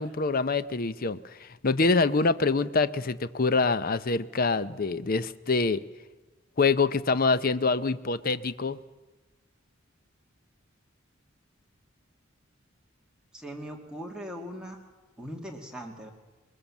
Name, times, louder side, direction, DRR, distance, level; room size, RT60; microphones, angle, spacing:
voice 1, 0.0-5.8 6.6-8.8, left 3 dB, 45° left, 15 dB, 0.7 m, -25 dB
voice 2, 13.3-14.8 15.2-16.1, equal, 5° right, 0 dB, 2.4 m, -40 dB
22.0 x 21.0 x 7.3 m, 1.2 s
head